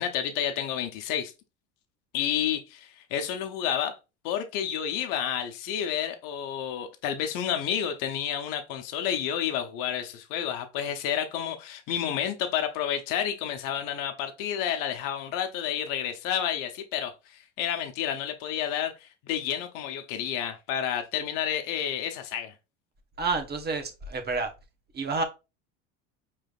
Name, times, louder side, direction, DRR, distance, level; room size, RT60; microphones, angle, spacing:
voice 1, 0.0-1.3 2.1-4.0 4.2-22.5, left 9 dB, 65° left, 0.9 m, -30 dB
voice 2, 23.2-24.5 24.9-25.2, right 3 dB, 30° right, 1.1 m, -29 dB
4.9 x 3.3 x 2.4 m
supercardioid pair, 100°, 35 cm